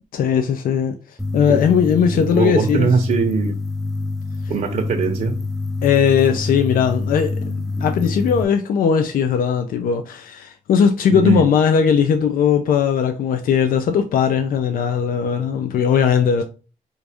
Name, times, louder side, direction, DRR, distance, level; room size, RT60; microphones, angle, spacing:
voice 1, 0.1-0.9 1.3-2.9 5.8-16.4, left 7 dB, 85° left, 0.5 m, -18 dB
sound 1, 1.2-8.4, left 3 dB, ahead, 0.5 m, -26 dB
voice 2, 2.1-3.5 4.5-5.3 11.1-11.4, right 5 dB, 65° right, 0.7 m, -21 dB
4.6 x 2.6 x 3.4 m
wide cardioid pair, 145°, 14 cm